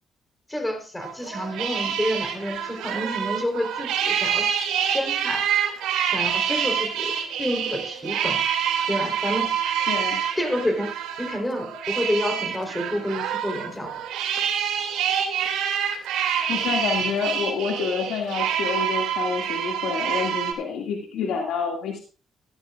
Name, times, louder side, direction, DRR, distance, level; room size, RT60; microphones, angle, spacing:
voice 1, 0.5-4.5 4.9-5.4 6.1-8.4 8.9-9.6 10.4-13.9 21.2-21.4, equal, 10° left, 4 dB, 4.0 m, -29 dB
sound 1, 1.0-20.5, right 8 dB, 90° right, 2.7 m, -26 dB
voice 2, 9.9-10.2 16.5-22.0, left 5 dB, 85° left, 0 dB, 2.3 m, -28 dB
15.0 x 11.5 x 2.5 m, 0.35 s
cardioid pair, 90°, 0 cm